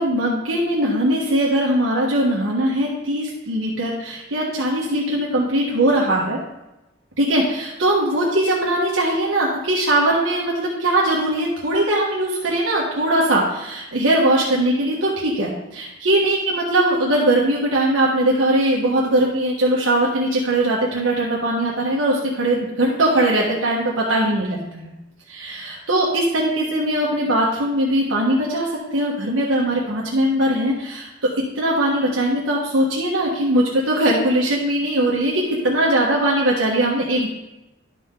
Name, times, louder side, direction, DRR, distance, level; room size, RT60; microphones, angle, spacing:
voice 1, 0.0-6.4 7.2-24.9 25.3-37.3, right 1 dB, 85° right, -4 dB, 1.5 m, -20 dB
11.5 x 5.1 x 3.8 m, 0.96 s
head